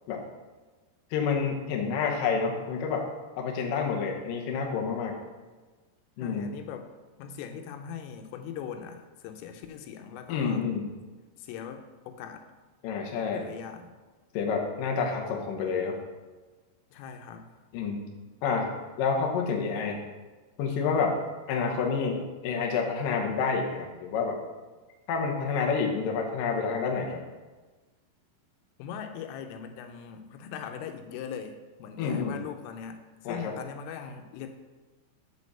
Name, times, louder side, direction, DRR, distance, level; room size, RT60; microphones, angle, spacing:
voice 1, 1.1-3.0 3.4-5.2 6.2-6.5 10.3-10.9 12.8-13.4 14.3-16.0 17.7-18.0 18.4-20.0 20.6-21.2 21.5-24.4 25.1-27.2 32.0-32.4 33.3-33.6, left 5 dB, 75° left, 0 dB, 2.0 m, -28 dB
voice 2, 6.2-6.9 7.2-10.7 11.4-12.5 13.3-13.9 16.9-17.5 28.8-34.5, left 7 dB, 90° left, 6 dB, 3.4 m, -40 dB
7.2 x 5.2 x 6.7 m, 1.3 s
omnidirectional pair, 5.6 m